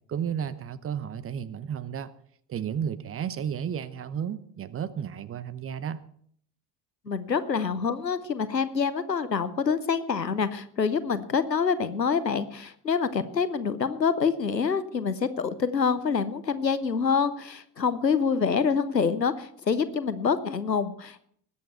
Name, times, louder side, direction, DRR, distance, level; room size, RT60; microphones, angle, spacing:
voice 1, 0.1-2.1 2.5-6.0, right 8 dB, 30° right, 17 dB, 0.9 m, -33 dB
voice 2, 7.1-21.3, left 6 dB, 90° left, 14 dB, 0.8 m, -26 dB
20.5 x 8.5 x 4.5 m, 0.63 s
figure-of-eight pair, 60°, 48 cm